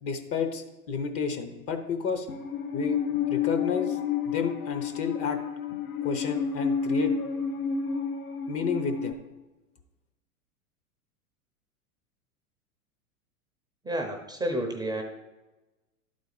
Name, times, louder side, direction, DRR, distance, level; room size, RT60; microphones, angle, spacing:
voice 1, 0.0-2.3 2.7-3.0 3.3-4.0 4.2-5.4 6.0-7.1 8.5-9.1, left 5 dB, 30° left, 7 dB, 0.9 m, -31 dB
Musical instrument, 2.3-9.1, left 6 dB, 75° left, 1.1 m, -30 dB
voice 2, 13.8-15.0, right 1 dB, 10° right, 2 dB, 0.8 m, -30 dB
11.5 x 4.2 x 4.8 m, 1.1 s
hypercardioid pair, 100°, 44 cm